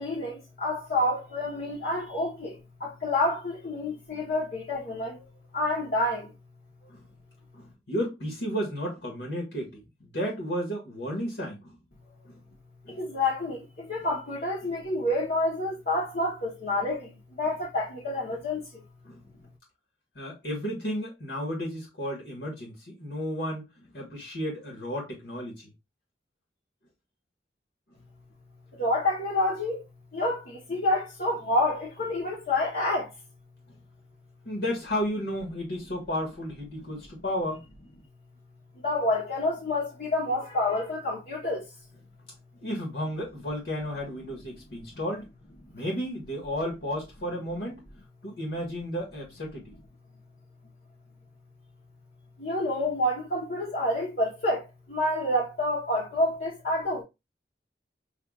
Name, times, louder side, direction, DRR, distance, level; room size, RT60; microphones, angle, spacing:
voice 1, 0.0-2.5 2.8-5.2 5.5-6.3 13.0-17.1 17.4-18.6 28.8-29.8 30.1-33.1 38.8-41.6 52.4-54.6 54.9-57.0, left 1 dB, 60° left, 0.9 m, -28 dB
voice 2, 7.5-11.8 12.2-12.4 12.8-13.0 19.0-19.2 20.1-25.7 33.7-33.8 34.4-37.6 42.6-45.3 45.7-47.8 48.2-49.7, equal, 80° left, 1.6 m, -33 dB
5.7 x 2.4 x 2.3 m
head